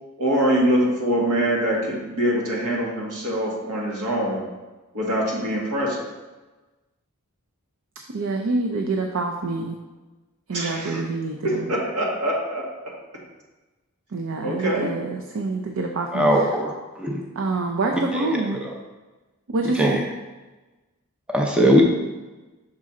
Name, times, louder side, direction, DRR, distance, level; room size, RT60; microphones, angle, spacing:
voice 1, 0.2-4.4 4.9-6.0 10.5-11.0 11.7-12.7 14.4-14.9, equal, 85° right, -3 dB, 1.5 m, -24 dB
voice 2, 8.1-9.8 10.5-11.8 14.1-16.5 17.4-18.6 19.5-20.0, right 3 dB, 60° right, 2 dB, 0.5 m, -26 dB
voice 3, 16.1-16.7 17.0-17.2 18.1-18.2 19.8-20.0 21.3-21.8, equal, 5° right, -1 dB, 0.5 m, -19 dB
6.1 x 4.2 x 3.7 m, 1.2 s
head